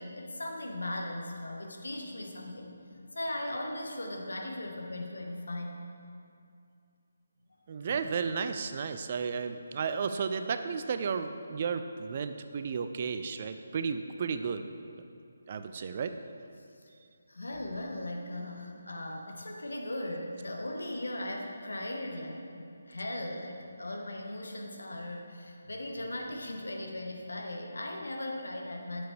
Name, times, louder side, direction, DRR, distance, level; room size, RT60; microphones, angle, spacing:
voice 1, 0.0-2.7 3.1-5.8 7.9-8.0 17.3-29.0, left 1 dB, 65° left, 1 dB, 1.2 m, -38 dB
voice 2, 7.7-14.6 15.5-16.1, right 5 dB, 35° right, 9 dB, 0.3 m, -33 dB
10.0 x 7.0 x 3.2 m, 2.4 s
figure-of-eight pair, 150°, 0 cm